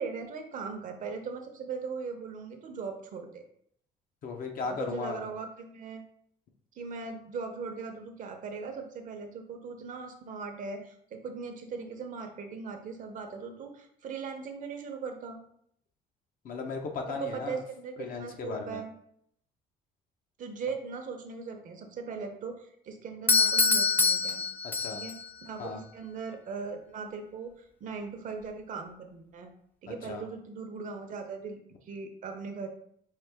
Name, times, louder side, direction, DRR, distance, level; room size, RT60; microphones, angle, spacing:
voice 1, 0.0-3.5 4.7-6.0 6.7-15.4 17.1-18.9 20.4-24.4 24.9-29.5 29.8-31.6 31.9-32.7, right 5 dB, 50° right, 5 dB, 0.7 m, -39 dB
voice 2, 4.2-5.3 16.4-17.6 18.0-18.8 24.8-25.0 25.6-25.8 29.9-30.2, left 4 dB, 55° left, 3 dB, 0.8 m, -36 dB
Doorbell, 23.3-25.3, left 4 dB, 10° left, 0.3 m, -25 dB
4.7 x 2.4 x 3.5 m, 0.68 s
cardioid pair, 110°, 17 cm